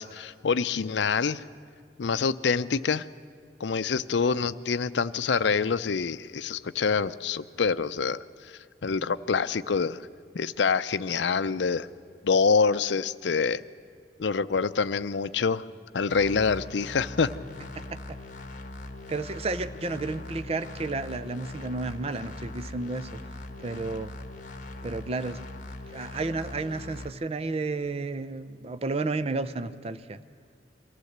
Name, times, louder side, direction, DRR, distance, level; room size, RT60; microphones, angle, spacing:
voice 1, 0.0-1.4 2.0-3.0 3.6-8.2 8.8-10.0 10.3-11.9 12.2-13.6 14.2-15.6 15.9-17.3, left 5 dB, 70° left, 13 dB, 0.5 m, -26 dB
sound 1, 16.1-27.1, left 2 dB, 45° left, 1.3 m, -41 dB
voice 2, 17.8-18.2 19.1-23.2 23.6-24.1 24.8-25.4 25.9-30.2, right 3 dB, 35° right, 12 dB, 0.5 m, -32 dB
23.5 x 15.0 x 8.0 m, 2.2 s
head